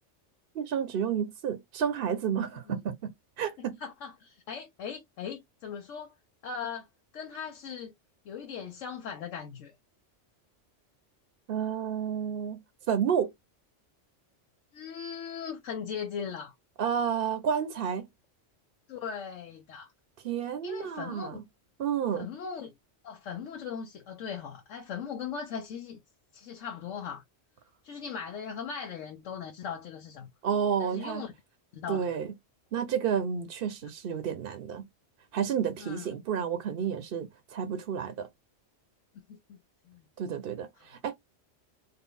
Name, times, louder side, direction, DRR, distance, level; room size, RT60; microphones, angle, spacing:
voice 1, 0.5-3.0 3.4-3.8 11.5-12.6 12.9-13.3 16.8-18.1 20.2-21.4 21.8-22.3 30.4-31.2 31.9-32.3 32.7-34.8 35.3-38.3 40.2-41.1, right 7 dB, 60° right, 0.7 m, -30 dB
voice 2, 3.8-6.1 6.4-6.9 7.1-7.9 8.2-9.7 14.7-16.5 18.9-19.9 20.6-21.4 22.1-22.7 23.0-26.0 26.3-27.2 27.8-30.3 30.8-31.3 31.7-32.1 35.8-36.1 39.1-39.6 39.8-40.1, left 7 dB, 85° left, 1.1 m, -39 dB
3.7 x 2.0 x 3.7 m
omnidirectional pair, 1.2 m